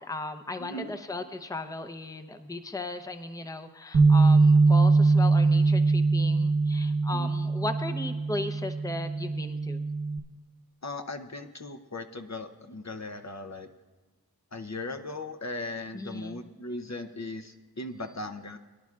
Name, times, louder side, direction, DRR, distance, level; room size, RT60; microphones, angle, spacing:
voice 1, 0.0-9.9 15.9-16.5, left 2 dB, 10° left, 7 dB, 0.7 m, -36 dB
voice 2, 0.6-0.9 7.1-7.3 10.8-13.7 14.5-18.6, left 2 dB, 45° left, 6 dB, 0.8 m, -38 dB
Bass guitar, 3.9-10.2, right 3 dB, 50° right, 1.2 m, -22 dB
22.0 x 10.5 x 2.4 m, 1.3 s
wide cardioid pair, 45°, 38 cm